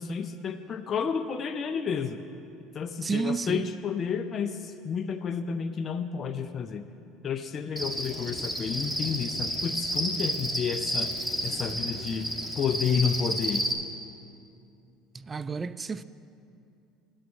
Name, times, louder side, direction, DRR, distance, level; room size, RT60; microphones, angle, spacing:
voice 1, 0.0-2.2 2.7-6.9 7.2-11.1 11.4-12.3 12.6-13.6, left 6 dB, 40° left, 0.5 m, -31 dB
voice 2, 3.0-3.7 15.1-16.0, right 4 dB, 25° right, 0.3 m, -31 dB
Cricket, 7.8-13.7, equal, 10° right, 1.5 m, -31 dB
10.5 x 8.8 x 6.4 m
hypercardioid pair, 80°, 0 cm